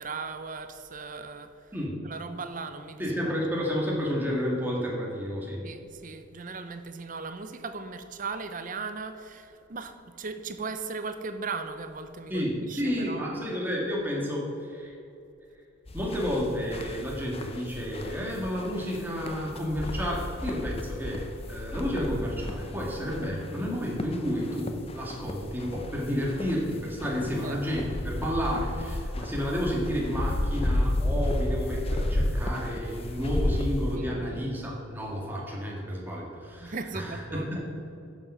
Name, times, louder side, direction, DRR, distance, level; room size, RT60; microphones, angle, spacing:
voice 1, 0.0-1.5 2.0-3.3 5.6-13.3 27.3-27.6 33.9-34.5 36.6-37.5, right 4 dB, 40° right, 9 dB, 0.6 m, -38 dB
voice 2, 3.0-5.6 12.3-14.9 15.9-37.7, equal, 10° right, -3 dB, 1.9 m, -31 dB
sound 1, 15.9-34.0, left 1 dB, 30° left, 0.6 m, -32 dB
11.0 x 7.2 x 5.6 m, 2.7 s
head